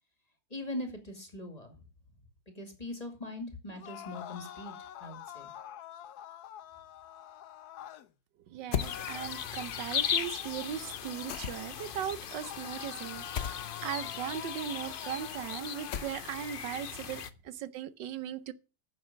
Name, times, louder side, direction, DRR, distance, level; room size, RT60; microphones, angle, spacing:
voice 1, 0.5-1.7 2.6-4.7 5.0-5.5, left 1 dB, 20° left, 2.3 m, -41 dB
sound 1, 3.7-8.1 8.8-12.0 12.3-16.3, left 11 dB, 70° left, 1.2 m, -46 dB
voice 2, 8.5-18.5, right 10 dB, 90° right, 1.5 m, -38 dB
sound 2, 8.7-9.0 11.3-11.8 13.3-13.6 15.9-16.4, left 8 dB, 55° left, 0.8 m, -34 dB
sound 3, 8.8-17.3, left 8 dB, 90° left, 0.4 m, -38 dB
9.6 x 7.3 x 6.9 m
omnidirectional pair, 1.9 m